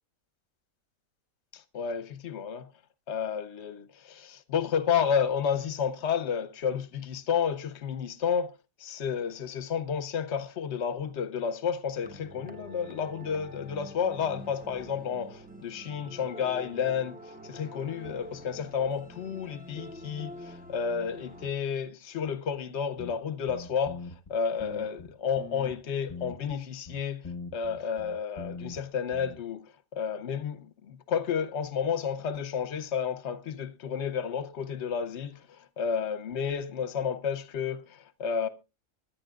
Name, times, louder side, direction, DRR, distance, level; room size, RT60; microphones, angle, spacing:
voice 1, 1.5-2.7 3.1-8.5 8.8-27.3 27.5-38.5, left 7 dB, 55° left, 1.1 m, -31 dB
sound 1, 12.0-21.5, equal, 10° right, 0.7 m, -46 dB
sound 2, 23.0-23.1 23.5-24.3 24.6-25.8 26.1-26.6 26.9-28.8 29.1-29.4, left 4 dB, 30° left, 1.1 m, -42 dB
24.5 x 10.5 x 2.4 m
omnidirectional pair, 1.5 m